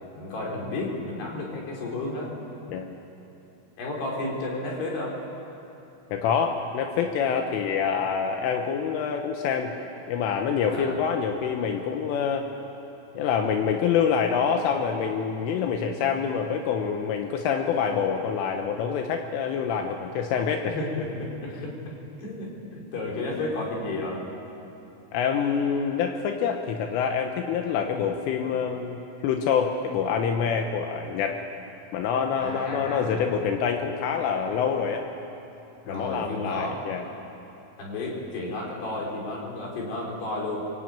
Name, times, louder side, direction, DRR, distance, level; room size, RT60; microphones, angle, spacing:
voice 1, 0.2-2.3 3.8-5.2 10.7-11.0 20.7-21.7 22.2-24.2 32.4-33.4 35.8-36.8 37.8-40.6, left 2 dB, 55° left, -2 dB, 6.1 m, -32 dB
voice 2, 6.1-9.7 10.1-12.5 13.2-20.8 25.1-31.4 31.9-35.0 35.9-37.0, left 7 dB, 80° left, 4 dB, 3.6 m, -26 dB
25.5 x 23.5 x 8.9 m, 2.9 s
omnidirectional pair, 5.8 m